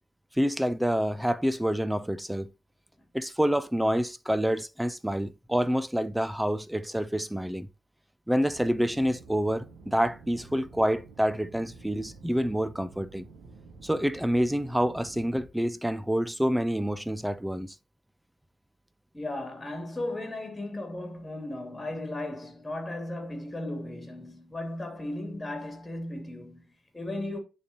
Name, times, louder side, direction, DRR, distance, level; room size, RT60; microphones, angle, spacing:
voice 1, 0.3-2.5 3.1-7.7 8.3-13.2 13.8-17.7, equal, 5° right, 0.7 m, -27 dB
sound 1, 8.4-15.5, right 4 dB, 65° right, 1.5 m, -50 dB
voice 2, 19.1-27.4, left 1 dB, 20° left, 3.1 m, -36 dB
10.0 x 4.2 x 3.0 m
hypercardioid pair, 50°, 0 cm